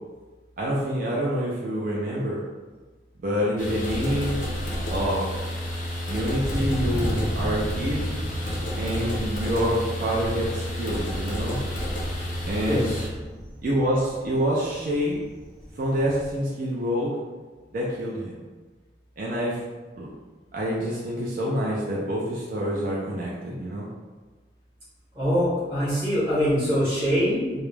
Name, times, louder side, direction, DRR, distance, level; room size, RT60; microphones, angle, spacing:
voice 1, 0.6-2.4 3.2-4.4 4.9-5.3 6.1-8.1 8.8-11.6 12.4-12.9 13.6-15.2 15.8-17.1 17.7-18.4 19.2-19.6 20.0-20.1 20.5-23.9, equal, 50° right, -5 dB, 0.4 m, -27 dB
sound 1, 3.6-13.1, equal, 45° left, 0.5 m, -30 dB
Thunder, 5.8-16.4, equal, ahead, 0.6 m, -35 dB
voice 2, 12.7-13.0 25.1-27.6, equal, 25° right, -11 dB, 0.9 m, -23 dB
2.3 x 2.0 x 3.1 m, 1.3 s
head